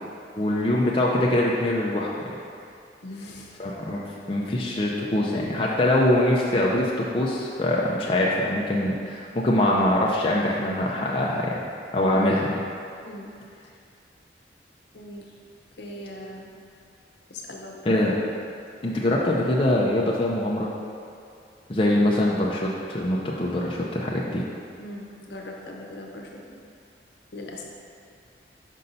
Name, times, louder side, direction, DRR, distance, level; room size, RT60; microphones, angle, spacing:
voice 1, 0.4-2.3 3.6-4.0 4.3-11.6 11.9-12.6 17.9-18.1 18.8-20.7 21.7-24.4, left 1 dB, 30° left, -3 dB, 0.5 m, -23 dB
voice 2, 3.0-3.5 12.1-12.4 13.0-13.3 14.9-15.3 15.8-16.5 17.3-18.0 24.8-26.6 27.3-27.6, left 1 dB, 70° left, -1 dB, 0.8 m, -39 dB
5.4 x 5.4 x 4.0 m, 2.4 s
head